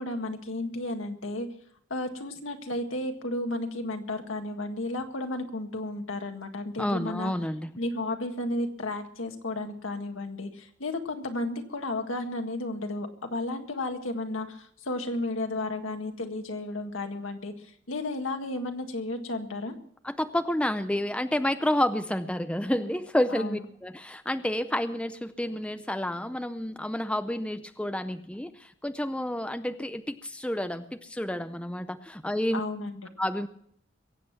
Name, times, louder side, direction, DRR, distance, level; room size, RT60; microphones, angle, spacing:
voice 1, 0.0-1.5 1.9-7.3 7.8-19.8 23.3-23.6 32.5-33.0, left 2 dB, 80° left, 5 dB, 1.8 m, -33 dB
voice 2, 6.8-7.7 20.0-32.6 33.2-33.5, left 1 dB, 5° left, 9 dB, 0.5 m, -30 dB
22.5 x 8.4 x 5.9 m, 0.65 s
head